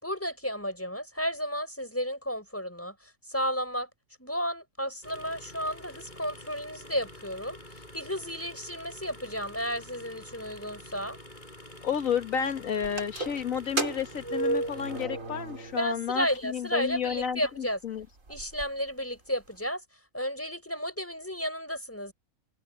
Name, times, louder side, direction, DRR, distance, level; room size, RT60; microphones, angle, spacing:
voice 1, 0.0-3.9 4.2-11.2 15.8-17.8 18.3-19.8 20.1-22.1, equal, 10° left, 5.3 m, -33 dB
sound 1, 5.0-15.1, left 1 dB, 35° left, 7.8 m, -48 dB
voice 2, 11.8-18.1, left 7 dB, 85° left, 1.8 m, -31 dB
sound 2, 12.8-16.0 16.3-16.4 17.2-17.3 17.7-17.8 18.0-18.7, right 2 dB, 75° right, 3.8 m, -33 dB
omnidirectional pair, 1.4 m